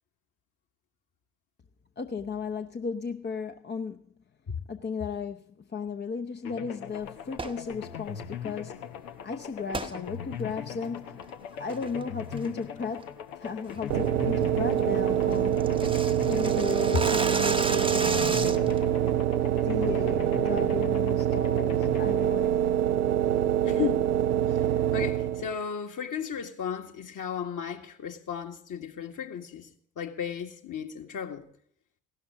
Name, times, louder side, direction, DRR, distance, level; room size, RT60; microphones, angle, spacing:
voice 1, 2.0-4.0 4.7-8.8 9.2-15.9 16.3-18.8 19.5-22.8, left 5 dB, 25° left, 0.8 m, -35 dB
sound 1, 6.4-23.4, left 8 dB, 75° left, 1.0 m, -40 dB
sound 2, 7.3-7.6 9.7-9.9 10.4-10.5 11.1-11.3 11.7-12.0 12.4-12.7 13.0-13.1 13.5-13.7 14.1-14.2 14.5-14.6 14.8-14.9 15.2-18.8, right 3 dB, 10° right, 0.9 m, -33 dB
sound 3, 13.9-25.6, right 11 dB, 85° right, 0.5 m, -25 dB
voice 2, 23.6-24.0 24.5-24.6 24.9-29.7 30.0-31.5, left 8 dB, 45° left, 1.9 m, -34 dB
16.5 x 12.5 x 3.9 m
figure-of-eight pair, 45°, 44 cm